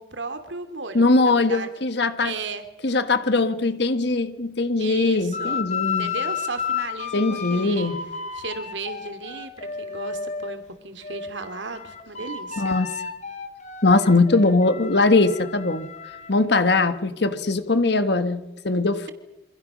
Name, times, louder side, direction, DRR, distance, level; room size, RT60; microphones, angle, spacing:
voice 1, 0.0-1.7 2.2-2.6 4.8-7.9 8.3-12.8, right 4 dB, 75° right, 9 dB, 2.7 m, -35 dB
voice 2, 0.9-2.3 2.8-6.1 7.1-8.0 12.6-12.9 13.8-15.9 16.3-19.1, left 3 dB, 60° left, 10 dB, 1.5 m, -21 dB
sound 1, 5.3-10.6 11.0-16.3, left 6 dB, 40° left, 3.2 m, -32 dB
28.0 x 25.5 x 6.3 m, 0.97 s
head